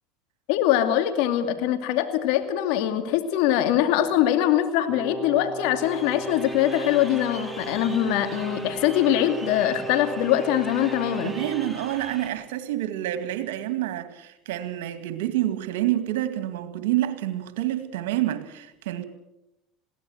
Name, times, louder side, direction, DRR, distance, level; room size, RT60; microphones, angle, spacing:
voice 1, 0.5-11.3, left 11 dB, 75° left, 2.5 m, -23 dB
Brass instrument, 4.9-11.8, right 2 dB, 20° right, 2.3 m, -36 dB
Crowd, 5.8-12.3, right 1 dB, 5° right, 3.6 m, -42 dB
voice 2, 11.2-19.0, right 13 dB, 85° right, 2.1 m, -28 dB
21.5 x 16.5 x 8.0 m
supercardioid pair, 90°, 0 cm